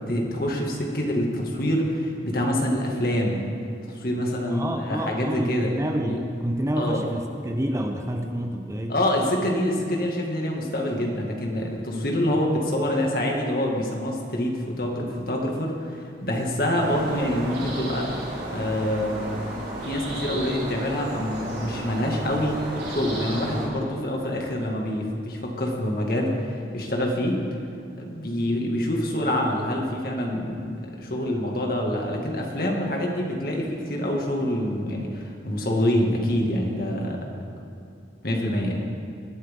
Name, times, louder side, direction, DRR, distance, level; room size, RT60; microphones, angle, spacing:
voice 1, 0.1-3.4 3.9-5.7 6.1-6.2 6.7-7.0 8.9-18.1 18.5-19.5 19.8-22.6 22.9-27.4 28.0-30.7 31.0-37.2 38.2-38.9, left 1 dB, 55° left, -1 dB, 2.1 m, -26 dB
voice 2, 4.4-9.0, equal, 15° right, 4 dB, 0.7 m, -28 dB
sound 1, 16.8-23.7, right 1 dB, 65° right, 4.3 m, -33 dB
20.5 x 12.5 x 3.7 m, 2.5 s
head